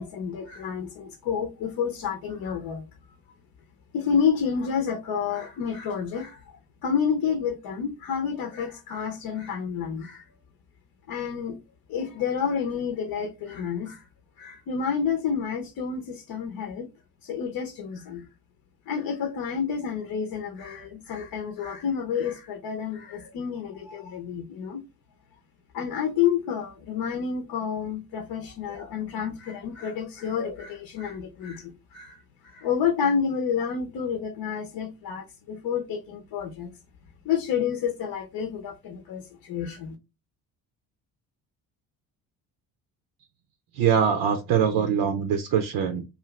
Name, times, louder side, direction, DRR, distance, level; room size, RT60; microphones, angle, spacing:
voice 1, 0.0-2.8 3.9-6.4 6.8-10.2 11.1-11.6 11.9-14.0 14.4-16.9 17.2-18.2 18.9-24.8 25.7-36.7 37.2-39.9, left 7 dB, 60° left, 0.7 m, -29 dB
voice 2, 43.8-46.1, right 7 dB, 65° right, 0.6 m, -23 dB
2.5 x 2.5 x 3.1 m
supercardioid pair, 65°, 41 cm